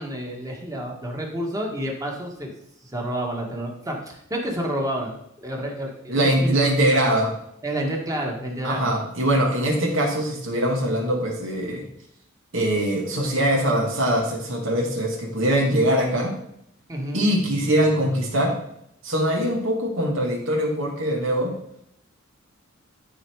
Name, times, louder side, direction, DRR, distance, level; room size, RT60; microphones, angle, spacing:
voice 1, 0.0-2.5 2.8-6.5 7.6-8.9 16.9-17.2, right 1 dB, 15° right, 0 dB, 1.9 m, -29 dB
voice 2, 6.1-7.3 8.6-11.8 12.5-16.3 17.1-18.5 19.0-21.5, right 1 dB, 65° right, 0 dB, 2.5 m, -22 dB
13.0 x 4.4 x 4.8 m, 0.75 s
head